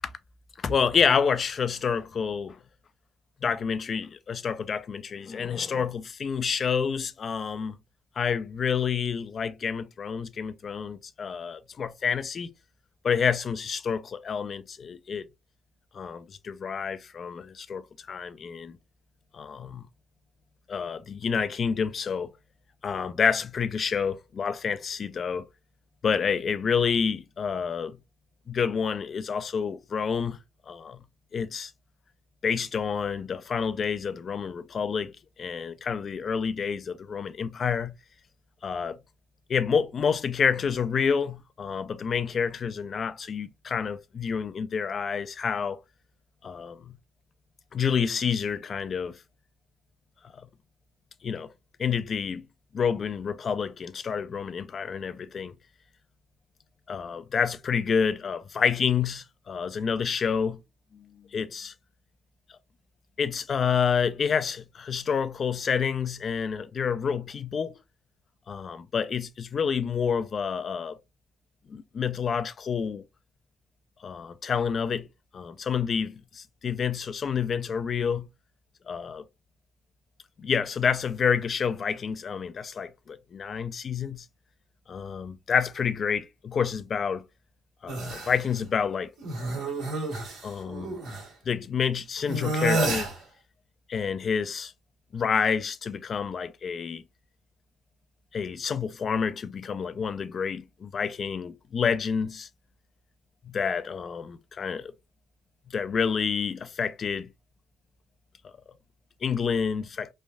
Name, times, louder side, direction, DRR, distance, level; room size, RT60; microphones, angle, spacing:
voice 1, 0.6-2.6 3.4-7.8 8.2-12.5 13.0-15.3 15.9-18.8 19.3-19.8 20.7-22.3 22.8-25.5 26.0-28.0 28.5-30.4 30.7-31.0 31.3-31.7 32.4-35.1 35.4-37.9 38.6-39.0 39.5-45.8 46.4-47.0 47.7-49.2 51.2-51.5 51.8-52.5 52.7-55.5 56.9-60.6 60.9-61.7 63.2-67.8 68.5-71.0 71.7-73.0 74.0-75.1 75.3-78.3 78.9-79.2 80.4-84.3 84.9-87.2 87.8-89.1 90.4-90.9 91.5-93.1 93.9-94.7 95.1-97.0 98.3-102.5 103.4-104.9 105.7-107.3 109.2-110.1, left 6 dB, 50° left, 0.4 m, -28 dB
sound 1, 87.9-88.4 89.2-91.3 92.3-93.2, right 2 dB, 80° right, 1.4 m, -30 dB
3.2 x 2.5 x 2.2 m
supercardioid pair, 65°, 0 cm